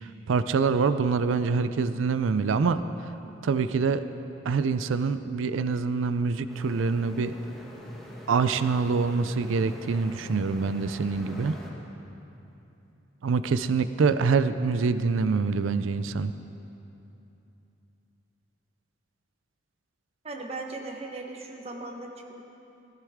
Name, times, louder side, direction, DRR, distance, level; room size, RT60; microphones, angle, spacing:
voice 1, 0.0-2.8 3.4-4.1 4.4-7.3 8.3-11.5 13.2-16.3, right 5 dB, 85° right, 12 dB, 0.4 m, -25 dB
sound 1, 6.5-11.7, equal, ahead, 1.5 m, -44 dB
voice 2, 20.2-22.4, right 2 dB, 30° right, 2 dB, 1.0 m, -38 dB
15.0 x 14.5 x 3.6 m, 2.9 s
head